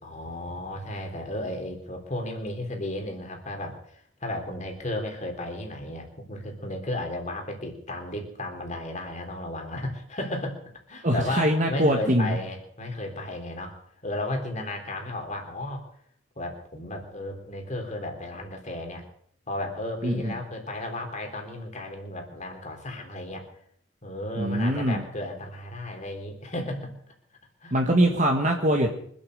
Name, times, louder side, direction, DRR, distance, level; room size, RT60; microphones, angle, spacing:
voice 1, 0.0-10.6 10.9-13.8 14.0-15.9 16.4-19.1 19.5-23.5 24.0-26.9 27.6-27.7, left 1 dB, 40° left, 2 dB, 3.5 m, -34 dB
voice 2, 11.0-12.3 20.0-20.3 24.3-25.0 27.7-28.9, right 1 dB, 40° right, 2 dB, 1.6 m, -23 dB
24.0 x 8.8 x 6.5 m, 0.66 s
head